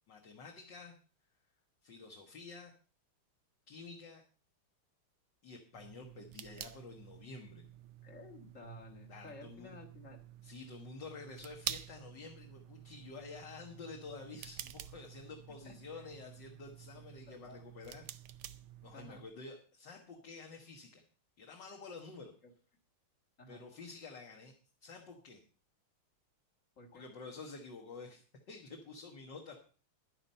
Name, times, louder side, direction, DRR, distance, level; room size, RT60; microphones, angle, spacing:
voice 1, 0.1-1.0 1.8-2.7 3.7-4.2 5.4-7.7 9.1-9.8 10.4-18.1 18.8-21.0 21.4-22.3 23.5-24.5 24.8-25.4 26.9-29.6, left 4 dB, 55° left, 1 dB, 2.1 m, -50 dB
sound 1, 5.7-19.3, right 12 dB, 80° right, 1.6 m, -49 dB
voice 2, 8.0-10.2 15.7-16.1 16.9-17.6 18.9-19.2 22.4-22.5 23.4-23.6 26.8-27.0, left 2 dB, 35° left, 2 dB, 2.1 m, -53 dB
11.0 x 10.0 x 5.5 m, 0.38 s
omnidirectional pair, 2.4 m